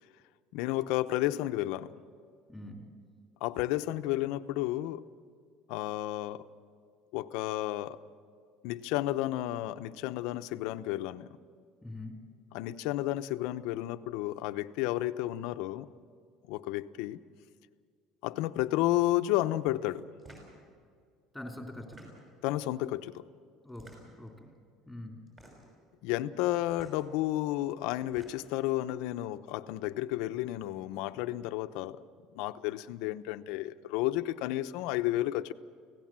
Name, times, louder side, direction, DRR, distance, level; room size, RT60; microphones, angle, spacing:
voice 1, 0.5-1.9 3.4-5.0 5.7-6.5 7.1-8.0 8.6-11.3 12.5-15.9 16.5-17.2 18.2-20.1 22.4-23.3 26.0-32.0 32.3-35.5, left 15 dB, 70° left, 11 dB, 0.7 m, -32 dB
voice 2, 2.5-2.9 11.8-12.2 21.3-22.1 23.6-24.5 24.9-25.2, left 1 dB, ahead, 2 dB, 2.9 m, -44 dB
sound 1, 20.2-20.6 21.7-22.4 23.7-24.3 25.3-25.8 26.7-27.0 27.9-28.6, right 1 dB, 25° right, 6.0 m, -53 dB
25.0 x 17.0 x 7.5 m, 2.1 s
cardioid pair, 160°, 0 cm